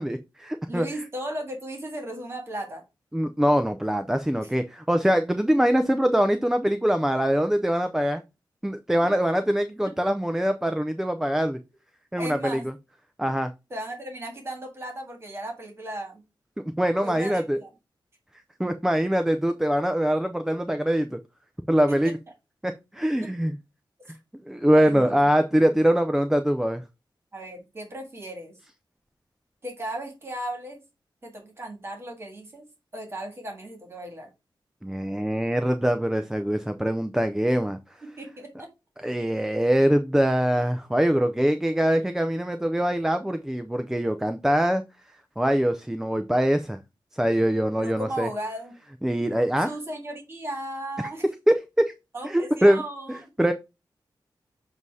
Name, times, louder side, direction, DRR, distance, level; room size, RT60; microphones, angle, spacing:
voice 1, 0.0-0.9 3.1-8.2 8.6-11.6 12.1-12.7 13.2-13.5 16.8-17.6 18.6-21.2 21.7-22.2 22.6-23.6 24.5-26.8 34.8-37.8 39.0-44.8 45.4-46.8 47.1-48.3 49.0-49.7 51.5-51.9 52.2-52.8 53.4-53.5, equal, 5° right, 8 dB, 0.4 m, -23 dB
voice 2, 0.7-2.8 9.0-9.1 12.2-12.7 13.7-16.2 17.0-17.7 21.9-22.1 23.2-23.3 24.1-24.2 24.7-25.1 25.8-25.9 27.3-28.5 29.6-30.8 31.2-32.6 32.9-34.3 38.0-38.7 47.8-48.8 49.6-51.2 52.1-53.3, right 1 dB, 30° right, 2 dB, 1.8 m, -36 dB
7.4 x 2.7 x 4.7 m, 0.26 s
wide cardioid pair, 155°, 8 cm